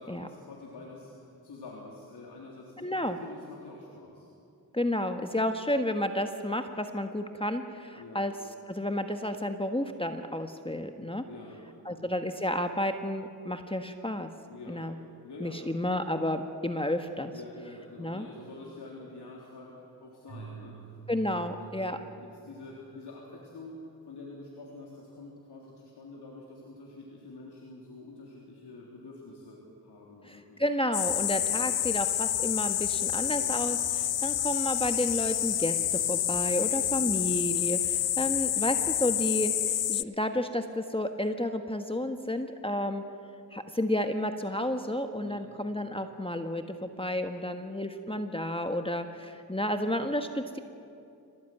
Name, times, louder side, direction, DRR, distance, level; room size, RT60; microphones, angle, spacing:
voice 1, 0.0-2.9 3.2-4.3 7.9-8.2 11.2-11.6 11.9-12.1 14.5-15.7 17.3-21.0 21.3-21.5 21.8-30.6 31.2-31.3 33.4-33.7 45.2-45.5, left 2 dB, 90° left, -3 dB, 3.6 m, -47 dB
voice 2, 2.8-3.2 4.7-8.3 8.7-11.2 11.8-14.3 14.7-14.9 15.4-17.3 18.0-18.2 21.1-22.0 30.3-33.8 34.2-43.0 43.5-50.6, left 1 dB, 15° left, 6 dB, 1.5 m, -31 dB
Keyboard (musical), 20.3-22.5, right 4 dB, 60° right, 7.2 m, -47 dB
sound 1, 30.9-40.0, left 11 dB, 70° left, 0.6 m, -28 dB
sound 2, 31.1-38.9, right 3 dB, 85° right, 3.6 m, -51 dB
25.5 x 18.0 x 9.3 m, 2.6 s
cardioid pair, 55°, 39 cm